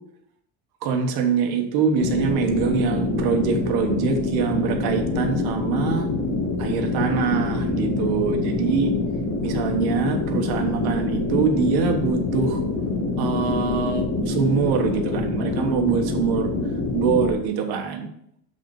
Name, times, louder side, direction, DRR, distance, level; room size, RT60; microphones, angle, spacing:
voice 1, 0.8-6.1 6.6-8.9 9.4-12.6 13.2-16.5 16.9-18.1, right 6 dB, 65° right, 4 dB, 1.4 m, -24 dB
sound 1, 2.0-17.3, left 3 dB, 45° left, 1.4 m, -25 dB
7.2 x 4.0 x 5.3 m, 0.74 s
cardioid pair, 115°, 40 cm